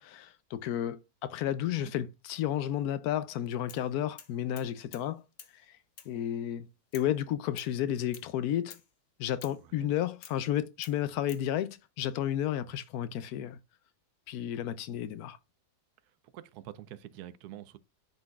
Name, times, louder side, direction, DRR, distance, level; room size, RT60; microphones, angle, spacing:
voice 1, 0.0-5.2 6.1-6.7 6.9-8.8 9.2-13.6 14.3-15.4, left 11 dB, 80° left, 1.1 m, -32 dB
voice 2, 1.6-1.9 9.6-9.9 16.2-17.8, right 12 dB, 85° right, 1.1 m, -47 dB
sound 1, 3.7-3.9 4.2-5.1 5.4-5.6 6.0-6.1 6.9-7.1 7.6-7.7 8.1-8.3 8.7-8.9 9.4-9.6 10.2-10.4 10.8-11.5, left 8 dB, 55° left, 1.0 m, -50 dB
10.5 x 3.9 x 2.4 m
omnidirectional pair, 1.6 m